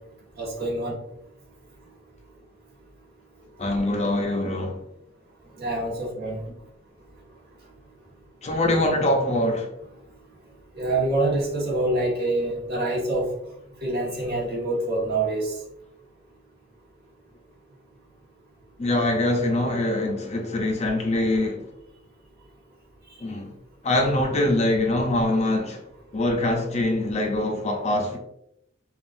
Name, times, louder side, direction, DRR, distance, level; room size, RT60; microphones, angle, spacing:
voice 1, 0.4-0.9 5.6-6.4 10.7-13.3 13.8-15.5, right 2 dB, 55° right, 1.5 m, -26 dB
voice 2, 3.6-4.8 8.4-9.7 18.8-21.6 23.2-23.5 23.8-25.8 26.1-28.2, left 1 dB, 35° left, 0.6 m, -23 dB
5.4 x 2.5 x 2.5 m
head